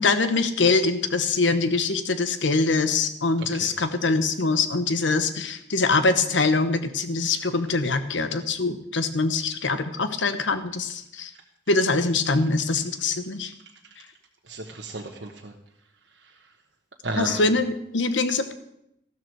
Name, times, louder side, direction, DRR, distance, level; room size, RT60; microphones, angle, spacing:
voice 1, 0.0-11.3 11.7-13.5 17.2-18.5, left 3 dB, 90° left, 10 dB, 1.1 m, -23 dB
voice 2, 3.4-3.7 14.4-15.5 16.1-16.4 17.0-17.5, right 2 dB, 75° right, 0 dB, 1.2 m, -34 dB
14.0 x 13.0 x 4.7 m, 0.80 s
head